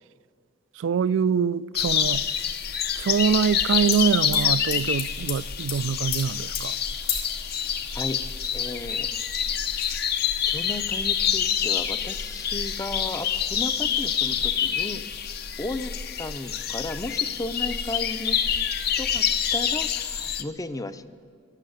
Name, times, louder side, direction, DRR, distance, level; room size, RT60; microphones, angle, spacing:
voice 1, 0.8-2.3 3.0-6.8, right 7 dB, 80° right, 0.3 m, -24 dB
sound 1, 1.7-20.4, left 8 dB, 55° left, 0.8 m, -27 dB
sound 2, 3.9-4.0 4.3-5.4 5.7-5.8 6.1-6.3 6.5-6.7 7.1-7.3 8.2-8.3 8.6-9.3 9.7-9.9, left 9 dB, 85° left, 3.4 m, -32 dB
voice 2, 8.5-9.1 10.4-15.1 15.6-18.5 18.7-21.1, left 2 dB, 20° left, 0.5 m, -34 dB
12.5 x 12.0 x 7.8 m
head